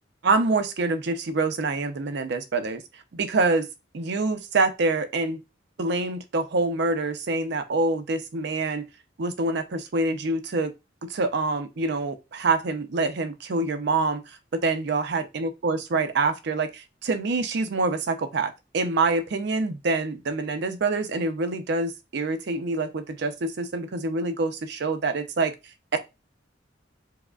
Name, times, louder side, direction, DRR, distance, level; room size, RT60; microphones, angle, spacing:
voice 1, 0.2-2.8 3.1-3.7 3.9-5.4 5.8-8.9 9.2-10.7 11.0-25.6 25.9-26.0, right 3 dB, 65° right, 0.5 m, -26 dB
4.7 x 2.1 x 2.3 m
head